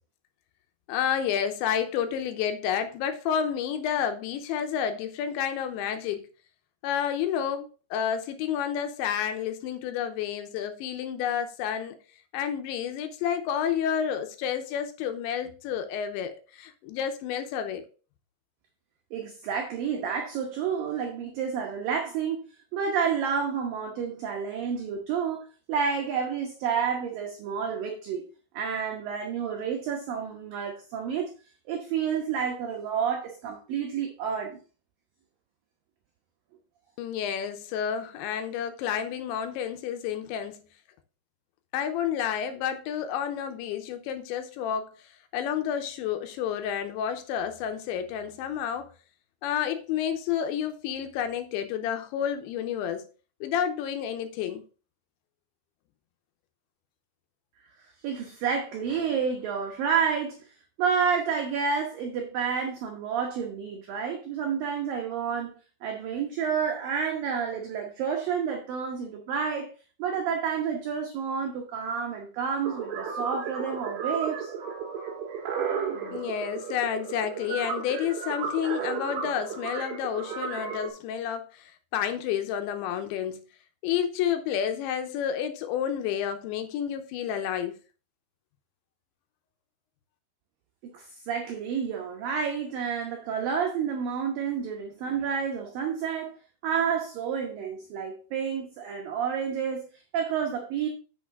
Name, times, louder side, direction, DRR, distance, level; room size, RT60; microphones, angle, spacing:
voice 1, 0.9-6.3 6.8-12.0 12.3-17.8 37.0-40.5 41.7-44.9 45.3-48.9 49.4-53.1 53.4-54.6 76.1-83.4 83.8-87.8, left 9 dB, 80° left, 3.0 m, -30 dB
voice 2, 19.1-22.4 22.7-28.3 28.5-31.3 31.7-34.6 58.0-60.4 60.8-65.5 65.8-69.7 70.0-74.5 90.9-96.3 96.6-99.9 100.1-100.9, right 6 dB, 75° right, 2.1 m, -29 dB
sound 1, 72.6-80.9, right 6 dB, 60° right, 2.5 m, -34 dB
8.6 x 6.5 x 3.7 m
omnidirectional pair, 5.4 m